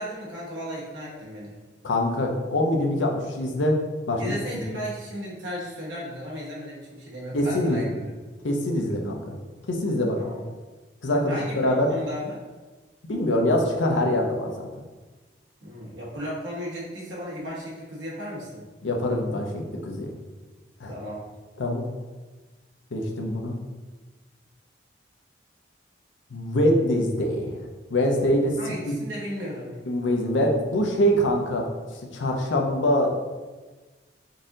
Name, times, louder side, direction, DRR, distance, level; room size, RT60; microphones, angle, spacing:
voice 1, 0.0-1.6 4.2-7.9 10.2-10.4 11.3-12.4 15.6-18.7 20.9-21.2 28.6-29.8, equal, 80° right, -5 dB, 1.3 m, -35 dB
voice 2, 1.8-3.8 4.1-4.2 7.3-7.9 8.4-9.3 9.7-10.2 11.0-11.9 13.1-14.7 18.8-20.1 20.8-20.9 21.6-21.9 22.9-23.6 26.3-27.5 27.9-28.5 28.9-29.0 29.9-31.7 32.1-33.1, left 1 dB, 90° left, 1 dB, 0.6 m, -24 dB
4.0 x 2.7 x 3.7 m, 1.3 s
head